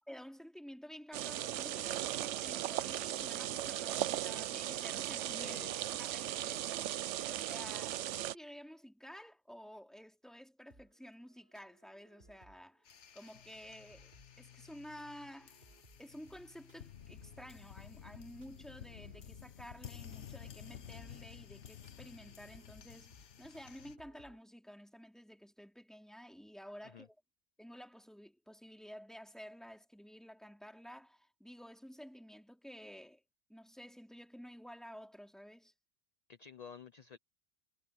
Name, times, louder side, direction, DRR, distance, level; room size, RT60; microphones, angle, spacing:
voice 1, 0.0-5.6 6.0-6.7 7.2-15.7 16.0-27.1 27.6-33.2 33.5-35.7, equal, ahead, 2.7 m, -52 dB
sound 1, 1.1-8.3, right 13 dB, 75° right, 0.9 m, -37 dB
voice 2, 5.4-5.8 6.2-6.6 26.8-27.1 36.3-37.2, left 6 dB, 40° left, 0.7 m, -52 dB
sound 2, 10.7-24.4, right 1 dB, 40° right, 4.1 m, -66 dB
sound 3, 12.9-24.0, left 9 dB, 70° left, 1.3 m, -53 dB
omnidirectional pair, 1.3 m